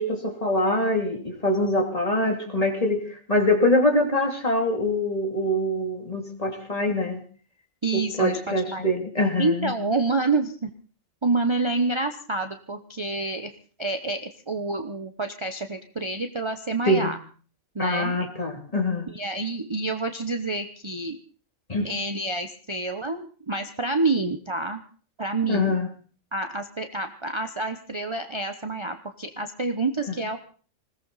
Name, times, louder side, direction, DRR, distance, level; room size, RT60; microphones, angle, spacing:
voice 1, 0.0-7.2 7.9-9.7 16.9-17.1 17.8-19.1 21.7-21.9 25.5-25.9, left 1 dB, 30° left, 2 dB, 3.0 m, -24 dB
voice 2, 7.8-8.9 9.4-10.7 11.2-13.5 13.8-17.2 17.7-18.3 19.1-21.2 21.8-24.8 25.2-25.7 26.3-30.4, right 3 dB, 25° right, 6 dB, 0.9 m, -28 dB
20.5 x 17.0 x 4.1 m, 0.42 s
omnidirectional pair, 1.3 m